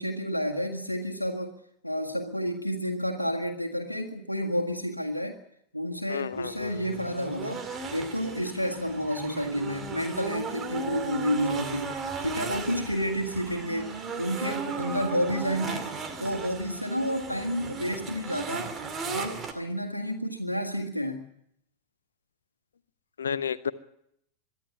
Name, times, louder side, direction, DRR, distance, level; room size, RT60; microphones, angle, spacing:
voice 1, 0.0-1.6 1.8-5.4 5.7-7.6 7.9-18.7 19.0-21.3, equal, 90° left, 2 dB, 1.7 m, -30 dB
voice 2, 6.1-6.7 23.2-23.7, left 7 dB, 70° left, 16 dB, 0.9 m, -31 dB
sound 1, 6.3-19.5, right 4 dB, 25° right, 2.3 m, -36 dB
23.0 x 13.0 x 9.7 m, 0.75 s
figure-of-eight pair, 90°, 0 cm